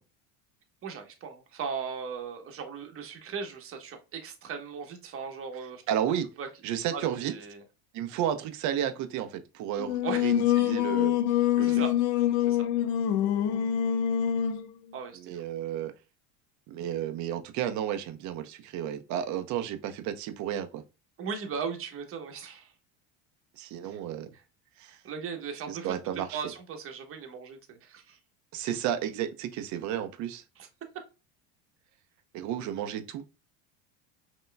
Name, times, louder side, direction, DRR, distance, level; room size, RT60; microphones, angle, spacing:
voice 1, 0.8-5.8 6.4-6.5 6.9-7.6 10.0-10.3 11.6-11.9 12.5-12.7 14.9-15.4 21.2-22.7 23.8-24.0 25.0-28.2 30.6-30.7, right 6 dB, 40° right, 1.1 m, -38 dB
voice 2, 5.9-6.3 6.6-7.3 7.9-11.2 11.6-11.8 15.1-15.9 16.7-20.8 23.6-24.3 24.8-25.0 25.7-26.4 28.5-30.4 32.3-33.2, right 10 dB, 55° right, 0.8 m, -32 dB
Singing, 9.8-14.7, left 11 dB, 55° left, 0.5 m, -25 dB
5.5 x 2.9 x 2.2 m
supercardioid pair, 110°, 35 cm